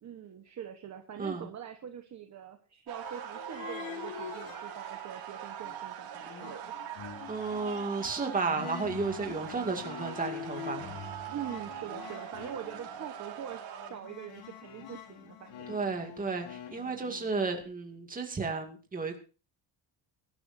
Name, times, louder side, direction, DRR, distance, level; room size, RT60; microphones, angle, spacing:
voice 1, 0.0-6.7 11.3-15.7, right 9 dB, 35° right, 5 dB, 1.2 m, -43 dB
sound 1, 2.9-13.9, right 9 dB, 65° right, 5.2 m, -42 dB
sound 2, 3.0-5.3 5.6-17.6, left 9 dB, 90° left, 2.9 m, -46 dB
voice 2, 7.3-10.9 15.7-19.2, right 4 dB, 15° right, 3 dB, 2.3 m, -33 dB
24.5 x 12.0 x 2.7 m, 0.35 s
cardioid pair, 175°, 47 cm